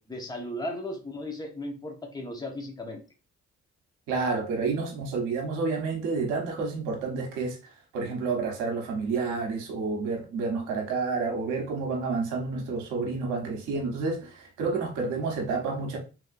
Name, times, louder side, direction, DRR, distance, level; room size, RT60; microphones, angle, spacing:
voice 1, 0.0-3.0, left 1 dB, 15° left, 1.1 m, -36 dB
voice 2, 4.1-7.6 7.9-16.0, right 4 dB, 85° right, 1.0 m, -29 dB
3.0 x 2.8 x 2.6 m
supercardioid pair, 55°, 30 cm